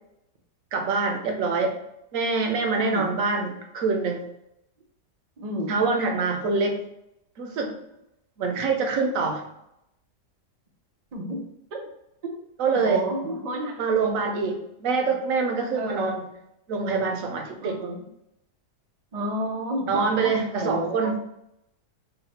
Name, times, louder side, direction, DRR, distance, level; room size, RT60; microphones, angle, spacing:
voice 1, 0.7-1.7 2.1-4.2 5.7-6.8 7.4-7.7 8.4-9.4 12.6-13.0 13.8-16.3 16.7-17.8 19.9-21.1, right 4 dB, 65° right, 3 dB, 0.9 m, -25 dB
voice 2, 2.8-3.1 5.4-5.7 11.1-11.4 11.7-11.8 12.2-12.3 12.7-14.2 15.7-16.2 17.6-18.1 19.1-21.1, right 1 dB, 90° right, 1 dB, 0.3 m, -31 dB
4.1 x 2.1 x 4.0 m, 0.81 s
omnidirectional pair, 1.8 m